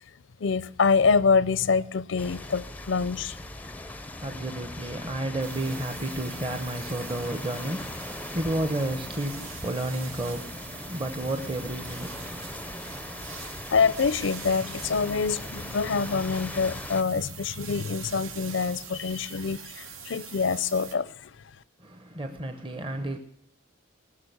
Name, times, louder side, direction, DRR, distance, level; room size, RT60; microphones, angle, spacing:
voice 1, 0.4-3.4 13.4-21.3, left 5 dB, 65° left, 0.5 m, -26 dB
sound 1, 2.2-17.0, left 2 dB, 10° left, 0.5 m, -40 dB
voice 2, 3.3-13.4 21.8-23.2, right 1 dB, 25° right, 0.8 m, -32 dB
sound 2, 5.4-21.0, right 7 dB, 85° right, 1.4 m, -44 dB
19.5 x 6.6 x 7.9 m
head